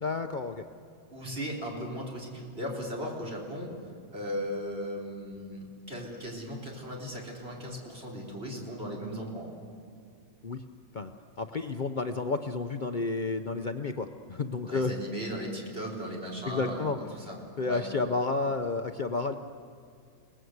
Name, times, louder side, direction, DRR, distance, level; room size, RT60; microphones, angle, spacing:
voice 1, 0.0-0.7 10.4-10.6 10.9-11.1 11.4-14.9 16.5-17.0 17.6-19.3, left 3 dB, 90° left, 6 dB, 0.4 m, -31 dB
voice 2, 1.1-3.7 4.1-9.5 14.6-17.4 17.6-17.8, equal, 35° right, -2 dB, 4.5 m, -37 dB
29.0 x 18.5 x 8.0 m, 2.3 s
omnidirectional pair, 2.0 m